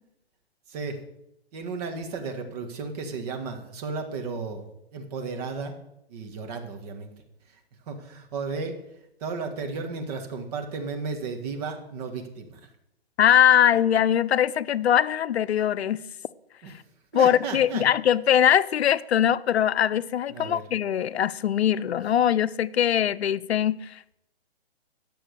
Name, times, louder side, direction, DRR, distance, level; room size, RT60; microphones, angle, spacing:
voice 1, 0.7-1.0 1.5-4.7 4.9-5.8 6.1-7.1 7.9-8.8 9.2-12.7 16.6-16.7 17.1-17.8 20.3-20.6, right 4 dB, 40° right, 1.6 m, -34 dB
voice 2, 13.2-16.0 17.1-24.1, left 9 dB, 85° left, 0.6 m, -22 dB
10.0 x 6.9 x 6.7 m
hypercardioid pair, 145°, 31 cm